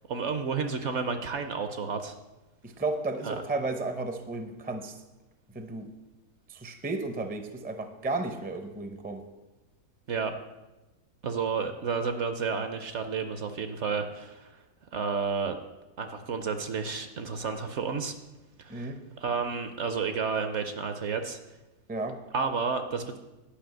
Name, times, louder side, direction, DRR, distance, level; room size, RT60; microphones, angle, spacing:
voice 1, 0.1-2.1 3.2-3.4 10.1-10.3 11.2-14.5 14.9-15.6 16.0-18.1 18.6-18.9 19.2-21.4 22.3-23.2, right 5 dB, 55° right, 8 dB, 0.9 m, -31 dB
voice 2, 2.6-4.9 5.5-5.9 6.5-9.2 18.7-19.0 21.9-22.2, right 3 dB, 10° right, 7 dB, 0.4 m, -33 dB
10.5 x 5.4 x 7.7 m, 1.1 s
omnidirectional pair, 1.6 m